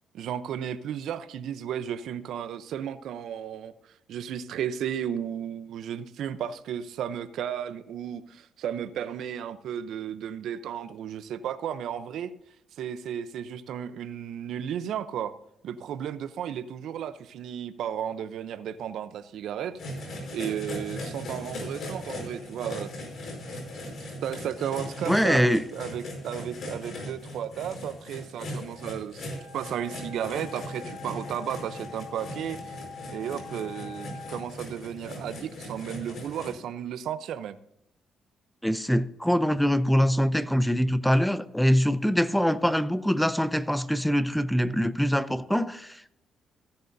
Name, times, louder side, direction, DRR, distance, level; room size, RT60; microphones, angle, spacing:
voice 1, 0.1-3.7 4.1-12.3 12.8-15.3 15.6-19.8 20.3-22.9 24.2-29.3 29.5-32.8 33.1-37.6, right 9 dB, 75° right, 0.7 m, -34 dB
sound 1, 19.8-36.5, left 1 dB, 60° left, 5.0 m, -39 dB
voice 2, 25.1-25.6 38.6-46.1, equal, 5° left, 0.6 m, -24 dB
Wind instrument woodwind instrument, 29.2-34.5, left 5 dB, 85° left, 3.6 m, -44 dB
16.0 x 10.5 x 2.7 m
cardioid pair, 90°, 0 cm